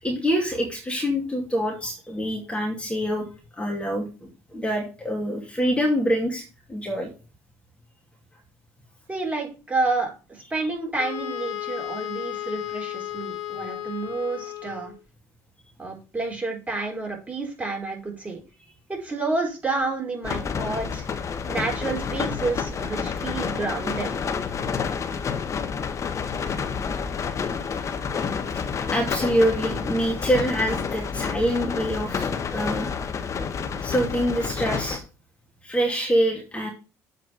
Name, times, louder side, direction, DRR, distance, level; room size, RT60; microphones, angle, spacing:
voice 1, 0.0-3.3 3.5-6.4 6.7-7.1 28.9-32.9 33.8-35.0 35.6-36.7, equal, 15° left, 0 dB, 2.6 m, -25 dB
voice 2, 9.1-14.9 15.8-18.4 18.9-21.1 21.5-24.1, right 3 dB, 20° right, 0 dB, 4.5 m, -29 dB
Wind instrument woodwind instrument, 11.0-15.0, left 13 dB, 70° left, 2.6 m, -34 dB
sound 1, 20.2-35.0, left 6 dB, 45° left, 1.4 m, -29 dB
8.0 x 4.6 x 6.5 m, 0.33 s
supercardioid pair, 70°, 7 cm